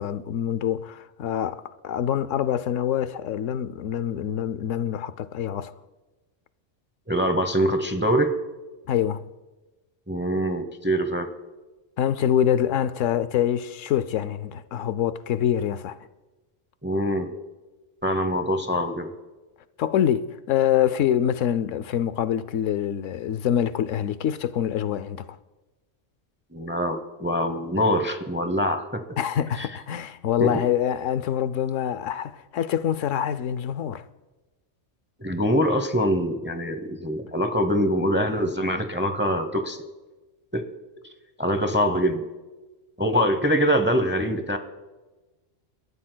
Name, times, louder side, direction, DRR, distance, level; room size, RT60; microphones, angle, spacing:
voice 1, 0.0-5.7 8.9-9.3 12.0-16.0 19.8-25.4 29.2-34.1, left 10 dB, 80° left, 1.0 m, -25 dB
voice 2, 7.1-8.4 10.1-11.3 16.8-17.3 18.0-19.1 26.5-29.0 30.4-30.5 35.2-39.8 40.5-40.7 41.4-42.3 43.0-44.6, equal, 10° right, 0.7 m, -24 dB
29.5 x 14.0 x 2.2 m
omnidirectional pair, 1.3 m